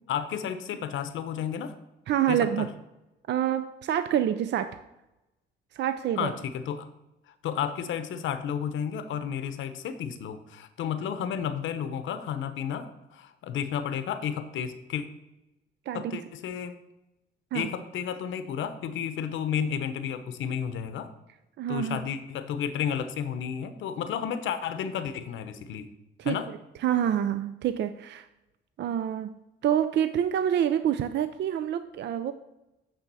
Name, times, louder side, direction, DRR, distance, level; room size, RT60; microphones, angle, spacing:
voice 1, 0.1-1.7 2.3-2.7 6.2-6.9 7.3-12.9 13.1-15.0 15.9-16.8 17.5-21.1 21.7-25.9 26.2-26.5, left 8 dB, 75° left, 10 dB, 0.8 m, -32 dB
voice 2, 2.1-2.7 3.3-4.8 5.7-6.3 15.9-16.0 17.5-17.7 21.6-22.1 26.2-26.4 26.8-28.3 28.8-29.3 29.6-32.3, right 10 dB, 60° right, 11 dB, 0.5 m, -27 dB
8.8 x 3.6 x 6.8 m, 0.95 s
cardioid pair, 90°, 20 cm